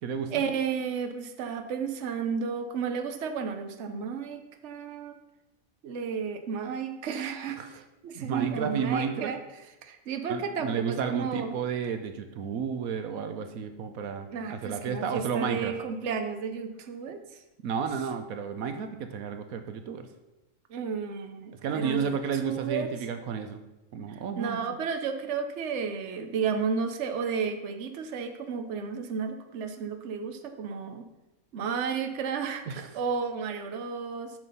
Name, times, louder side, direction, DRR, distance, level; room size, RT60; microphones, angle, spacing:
voice 1, 0.3-5.2 5.8-7.6 8.0-9.4 9.8-11.5 14.3-17.4 20.7-22.9 24.1-31.1 31.5-34.3, right 6 dB, 60° right, 7 dB, 1.1 m, -32 dB
voice 2, 8.2-9.3 10.3-15.7 17.6-20.1 21.5-23.6 23.9-24.6 32.7-32.9, right 6 dB, 80° right, 8 dB, 1.2 m, -32 dB
9.1 x 6.1 x 5.4 m, 0.98 s
omnidirectional pair, 1.5 m